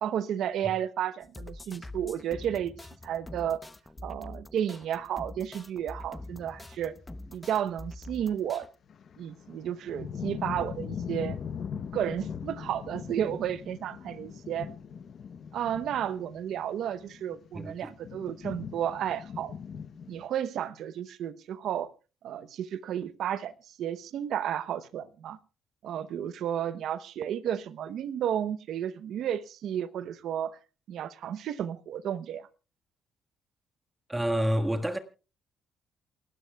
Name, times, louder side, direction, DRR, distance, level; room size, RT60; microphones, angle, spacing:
voice 1, 0.0-2.7 3.0-3.6 4.0-6.9 7.3-8.7 9.2-11.4 11.9-14.7 15.5-19.5 20.1-21.9 22.2-23.5 23.8-25.4 25.8-30.6 30.9-32.5, right 10 dB, 75° right, 0.9 m, -32 dB
sound 1, 1.2-8.7, left 2 dB, 15° left, 0.8 m, -45 dB
sound 2, 8.9-20.3, left 7 dB, 60° left, 0.9 m, -40 dB
voice 2, 17.5-17.9 34.1-35.0, equal, 10° right, 1.6 m, -28 dB
28.0 x 12.5 x 2.3 m
cardioid pair, 90°, 0 cm